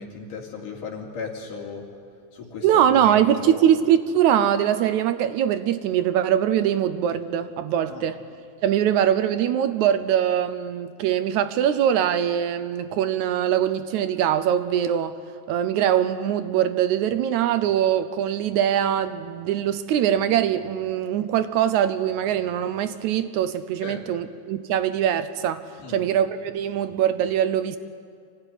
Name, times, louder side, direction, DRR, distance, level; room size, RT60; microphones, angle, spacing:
voice 1, 0.0-1.8 2.3-3.7 7.9-8.1 23.8-24.0 25.8-26.0, left 5 dB, 80° left, 1 dB, 4.1 m, -36 dB
voice 2, 2.6-8.2 8.6-15.2 15.5-27.8, right 10 dB, 75° right, 11 dB, 2.0 m, -22 dB
25.5 x 15.5 x 9.9 m, 2.2 s
omnidirectional pair, 3.7 m